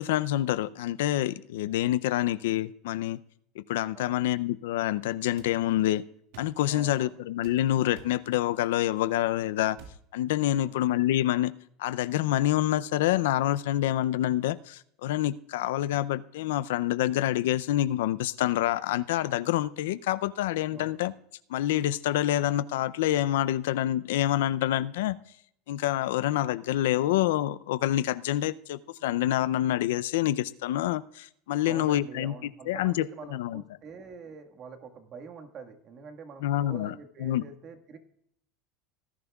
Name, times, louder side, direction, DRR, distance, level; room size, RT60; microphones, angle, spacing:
voice 1, 0.0-3.2 3.6-6.0 6.4-9.8 10.1-11.5 11.8-21.1 21.5-25.2 25.7-32.3 32.7-33.6 36.4-36.9 37.2-37.4, left 13 dB, 85° left, 0.4 m, -27 dB
voice 2, 3.9-4.2 6.7-7.1 10.5-10.8 20.7-21.0 31.6-38.0, right 5 dB, 40° right, 1.6 m, -45 dB
sound 1, 5.4-5.5 6.3-6.6 7.4-7.6 8.0-8.2 9.7-10.0, right 5 dB, 75° right, 2.0 m, -49 dB
19.0 x 11.0 x 2.3 m
supercardioid pair, 125°, 0 cm